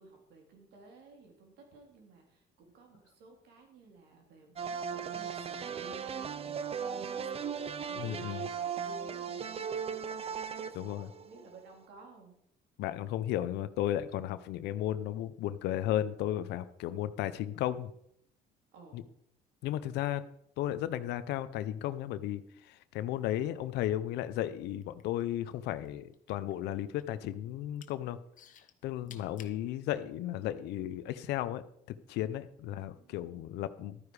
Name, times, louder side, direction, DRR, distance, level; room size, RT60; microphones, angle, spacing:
voice 1, 0.0-12.4 18.7-19.1 29.0-29.3 32.6-33.5, right 3 dB, 80° right, 2 dB, 3.9 m, -54 dB
sound 1, 4.6-11.6, right 7 dB, 35° right, 0.7 m, -37 dB
voice 2, 8.0-8.4 10.7-11.1 12.8-17.9 18.9-19.0 19.6-20.2 20.6-28.2 28.8-34.0, left 12 dB, 85° left, 13 dB, 0.7 m, -34 dB
sound 2, 24.7-25.9 26.1-27.2 27.6-27.9 28.4-29.6 30.3-30.4, left 9 dB, 50° left, 1.2 m, -55 dB
12.5 x 9.7 x 4.9 m, 0.71 s
cardioid pair, 110°, 17 cm